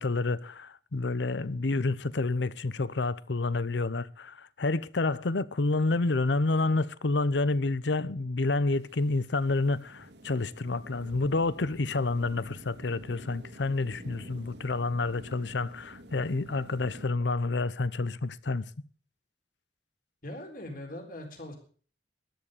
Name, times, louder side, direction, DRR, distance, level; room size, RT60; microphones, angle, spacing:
voice 1, 0.0-18.6, left 3 dB, 75° left, 0.8 m, -29 dB
sound 1, 8.7-17.1, right 1 dB, 65° right, 2.2 m, -49 dB
voice 2, 20.2-21.5, left 1 dB, 50° left, 3.9 m, -41 dB
13.0 x 11.0 x 6.6 m
head